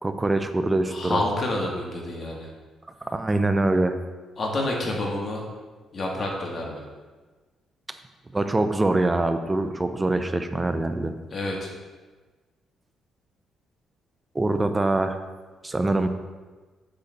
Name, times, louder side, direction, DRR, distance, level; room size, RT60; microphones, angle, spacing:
voice 1, 0.0-1.2 3.0-4.0 8.3-11.1 14.3-15.2 15.6-16.1, right 2 dB, 20° right, 8 dB, 0.6 m, -24 dB
voice 2, 0.9-2.5 4.4-5.4 5.9-6.8 11.3-11.7, left 1 dB, 40° left, -1 dB, 2.0 m, -28 dB
8.6 x 3.9 x 6.7 m, 1.3 s
cardioid pair, 90°, 0 cm